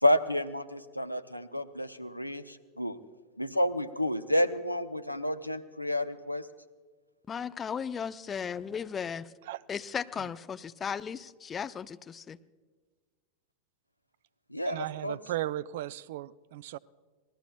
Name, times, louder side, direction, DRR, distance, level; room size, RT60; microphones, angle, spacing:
voice 1, 0.0-3.0 3.4-6.5 14.5-14.8 15.0-15.2, left 1 dB, 90° left, 10 dB, 0.8 m, -30 dB
voice 2, 7.3-9.3 9.7-12.4, left 7 dB, 20° left, 12 dB, 0.6 m, -36 dB
voice 3, 14.6-16.8, right 14 dB, 55° right, 21 dB, 0.4 m, -36 dB
26.5 x 19.5 x 2.3 m, 1.4 s
figure-of-eight pair, 90°, 0 cm